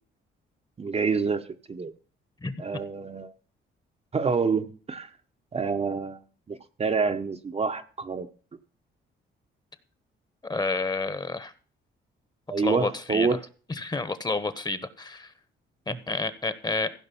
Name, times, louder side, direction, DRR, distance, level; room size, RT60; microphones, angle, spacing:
voice 1, 0.8-1.9 2.6-3.3 4.1-5.1 5.5-6.2 6.5-8.3 12.5-13.4 15.9-16.0, right 5 dB, 30° right, 0.8 m, -27 dB
voice 2, 10.4-11.5 12.6-13.4 13.7-15.3 15.9-16.9, left 3 dB, 20° left, 1.2 m, -30 dB
15.5 x 5.2 x 6.9 m
cardioid pair, 90°, 20 cm